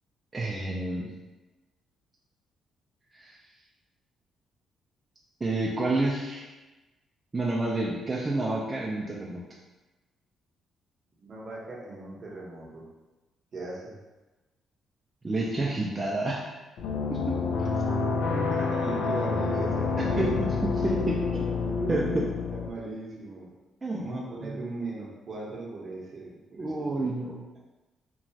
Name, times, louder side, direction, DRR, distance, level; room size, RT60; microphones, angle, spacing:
voice 1, 0.3-1.1 3.1-3.3 5.4-6.4 7.3-9.4 15.2-16.5 17.1-17.3 20.1-21.5 21.9-22.2 23.8-24.1 26.6-27.4, right 2 dB, 25° right, -5 dB, 0.4 m, -29 dB
voice 2, 11.2-12.9 13.5-14.0 17.6-17.7 18.3-20.2 21.6-23.5 23.9-27.0, right 2 dB, 50° right, -4 dB, 0.7 m, -38 dB
sound 1, 16.8-22.7, left 4 dB, 80° left, 0.3 m, -28 dB
3.0 x 2.2 x 2.7 m, 1.1 s
cardioid pair, 90°, 0 cm